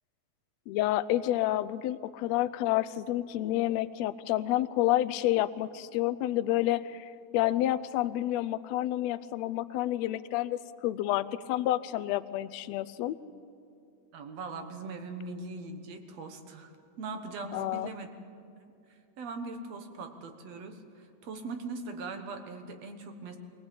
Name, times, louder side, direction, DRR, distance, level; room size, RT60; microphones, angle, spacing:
voice 1, 0.7-7.0 7.3-13.1 17.5-17.9, left 14 dB, 75° left, 13 dB, 1.6 m, -29 dB
voice 2, 14.1-18.1 18.9-23.4, right 3 dB, 60° right, 6 dB, 2.4 m, -41 dB
23.0 x 17.5 x 8.7 m, 2.7 s
omnidirectional pair, 3.5 m